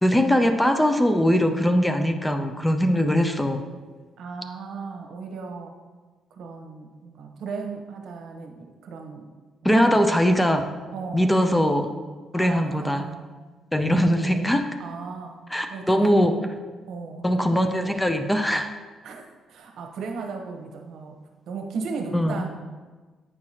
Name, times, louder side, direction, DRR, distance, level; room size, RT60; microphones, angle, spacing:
voice 1, 0.0-3.6 9.6-10.7 11.1-11.9 12.3-13.1 13.7-14.7 15.5-16.4 17.2-18.7 22.1-22.4, equal, 10° left, 7 dB, 0.4 m, -21 dB
voice 2, 4.2-5.8 6.3-9.3 9.6-9.9 10.9-11.6 12.4-13.3 14.8-15.4 15.7-16.1 16.8-17.3 19.0-21.2 21.5-22.5, right 4 dB, 75° right, 3 dB, 0.9 m, -36 dB
8.6 x 4.7 x 2.8 m, 1.3 s
cardioid pair, 90°, 0 cm